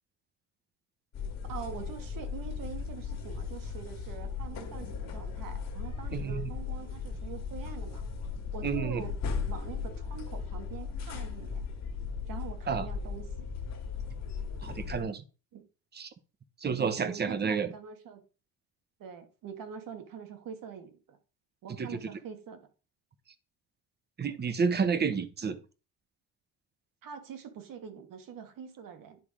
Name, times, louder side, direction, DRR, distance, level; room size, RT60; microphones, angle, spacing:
sound 1, 1.1-15.0, left 5 dB, 45° left, 1.8 m, -37 dB
voice 1, 1.5-8.1 8.5-9.2 9.5-11.6 12.3-13.5 15.5-15.7 16.8-18.2 19.0-21.2 21.6-22.7 27.0-29.2, right 7 dB, 60° right, 1.7 m, -44 dB
voice 2, 6.1-6.5 8.6-9.0 12.7-12.9 14.6-15.2 15.9-16.1 16.6-17.7 21.8-22.0 24.2-25.6, right 6 dB, 25° right, 0.9 m, -30 dB
10.0 x 3.5 x 4.9 m
cardioid pair, 120°, 38 cm